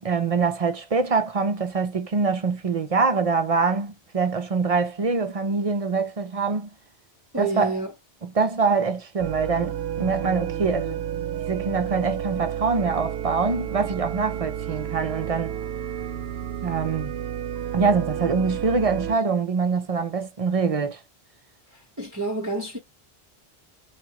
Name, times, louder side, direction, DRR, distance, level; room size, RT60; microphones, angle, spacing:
voice 1, 0.0-6.7 7.4-7.7 8.2-11.0 11.5-15.5 16.6-17.2 17.7-21.0, right 4 dB, 45° right, 0.5 m, -24 dB
voice 2, 7.3-7.9 21.7-22.8, right 3 dB, 20° right, 1.0 m, -29 dB
sound 1, 9.2-19.2, right 10 dB, 80° right, 0.8 m, -31 dB
4.2 x 2.3 x 2.9 m
omnidirectional pair, 1.1 m